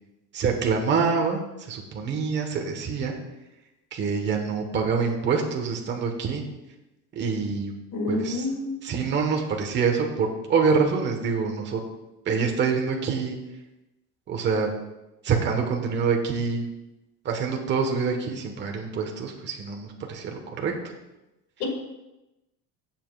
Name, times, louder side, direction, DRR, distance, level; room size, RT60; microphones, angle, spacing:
voice 1, 0.3-1.4 1.7-3.1 3.9-6.5 7.1-7.7 8.1-8.5 8.8-11.8 12.2-13.4 14.3-14.7 15.2-16.7 17.2-20.7, right 5 dB, 40° right, 2 dB, 1.4 m, -26 dB
voice 2, 7.9-8.8 21.6-21.7, left 2 dB, 60° left, 2 dB, 2.1 m, -28 dB
15.5 x 7.5 x 2.5 m, 0.98 s
cardioid pair, 150°, 30 cm